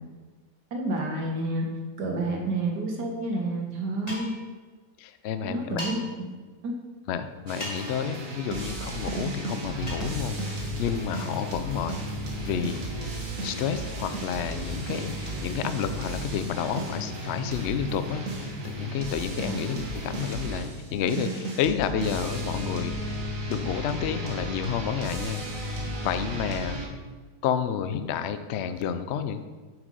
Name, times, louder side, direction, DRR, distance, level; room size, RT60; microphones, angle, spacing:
voice 1, 0.7-1.7 2.0-4.3 5.4-6.0 6.6-6.7 19.4-19.8, right 2 dB, 75° right, 1 dB, 1.9 m, -29 dB
sound 1, 4.1-4.4 5.8-5.9 7.6-7.9 9.9-10.1, left 1 dB, 20° left, 2.5 m, -35 dB
voice 2, 5.0-5.8 7.1-12.0 12.4-12.8 13.4-23.0 23.5-25.4 26.0-26.8 27.4-29.5, left 8 dB, 85° left, 10 dB, 0.5 m, -30 dB
sound 2, 7.5-26.9, right 1 dB, 50° right, 1.8 m, -34 dB
sound 3, 9.4-17.9, equal, 25° right, 3.2 m, -45 dB
8.3 x 6.2 x 5.3 m, 1.4 s
omnidirectional pair, 1.8 m